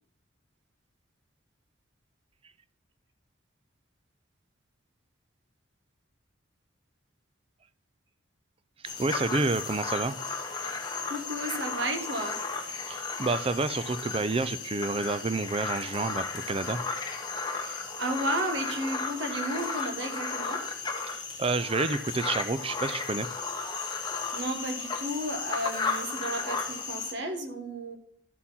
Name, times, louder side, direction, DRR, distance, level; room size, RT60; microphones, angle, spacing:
sound 1, 8.8-27.1, left 4 dB, 20° left, 1.0 m, -34 dB
voice 1, 8.8-10.2 12.9-16.8 21.1-23.3, right 3 dB, 25° right, 0.4 m, -29 dB
voice 2, 11.1-12.4 17.6-20.6 24.3-28.0, right 1 dB, 60° right, 1.4 m, -33 dB
12.5 x 4.3 x 5.6 m
head